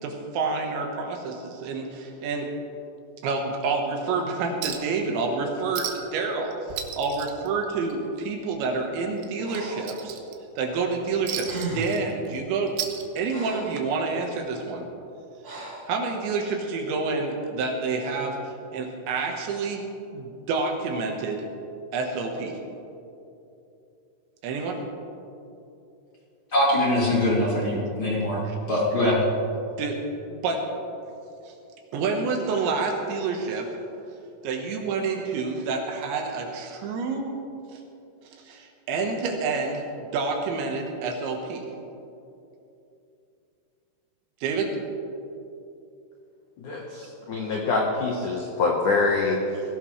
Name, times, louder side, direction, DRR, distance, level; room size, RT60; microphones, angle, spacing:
voice 1, 0.0-2.5 3.2-10.2 10.6-12.8 13.2-14.9 15.9-19.9 20.1-21.4 21.9-22.6 24.4-24.8 28.4-28.6 29.8-30.7 31.5-31.6 31.9-33.7 34.4-37.4 37.7-37.8 38.4-41.7 44.4-44.8, right 4 dB, 75° right, 2 dB, 3.5 m, -28 dB
Chink clink, 4.6-5.0 5.3-5.4 5.7-6.2 6.5-8.2 8.5-8.7 9.2-10.6 11.3-12.4 12.7-13.6 14.7-14.8, right 9 dB, 90° right, 3.5 m, -35 dB
Breathing, 9.4-10.0 11.1-11.2 11.4-12.1 12.8-13.8 15.4-15.9, right 3 dB, 55° right, 1.0 m, -36 dB
voice 2, 26.5-28.4 28.7-29.2, left 1 dB, 30° left, -7 dB, 3.0 m, -22 dB
voice 3, 46.6-49.6, left 3 dB, 70° left, -1 dB, 1.9 m, -25 dB
21.0 x 16.5 x 3.3 m, 2.7 s
omnidirectional pair, 5.6 m